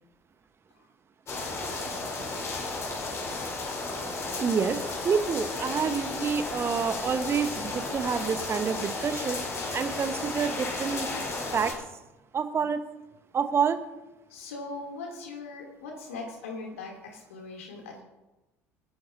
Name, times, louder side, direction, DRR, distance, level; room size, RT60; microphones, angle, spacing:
sound 1, 1.3-11.7, left 3 dB, 35° left, 4.8 m, -33 dB
voice 1, 4.4-9.4 9.7-11.1 11.5-11.7 12.3-12.8 13.3-13.8, right 6 dB, 30° right, 9 dB, 1.3 m, -28 dB
voice 2, 14.3-18.0, left 3 dB, 70° left, 1 dB, 3.2 m, -40 dB
26.5 x 12.0 x 2.8 m, 1.0 s
figure-of-eight pair, 60°, 8 cm